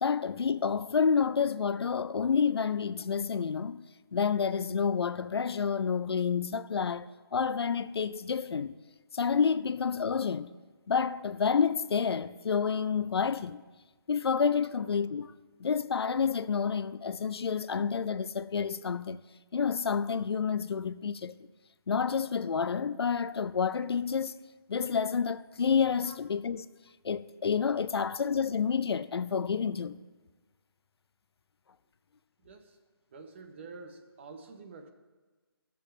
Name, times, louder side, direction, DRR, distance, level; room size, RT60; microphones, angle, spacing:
voice 1, 0.0-7.1 7.3-8.7 9.1-10.5 10.9-13.6 14.1-15.3 15.6-19.2 19.5-21.3 21.9-24.4 24.7-26.6 27.0-30.0, left 6 dB, 80° left, 0.5 m, -29 dB
voice 2, 32.4-32.8 33.1-34.9, right 4 dB, 30° right, 0.8 m, -48 dB
15.5 x 6.9 x 3.2 m
hypercardioid pair, 165°, 13 cm